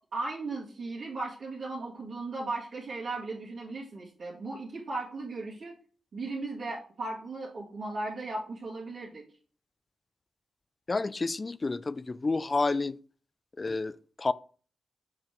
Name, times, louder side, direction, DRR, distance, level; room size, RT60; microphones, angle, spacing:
voice 1, 0.1-5.7 6.1-9.2, right 3 dB, 60° right, 2.3 m, -36 dB
voice 2, 10.9-13.0 13.6-14.3, left 3 dB, 35° left, 0.3 m, -30 dB
7.3 x 4.9 x 3.1 m
cardioid pair, 85°, 0 cm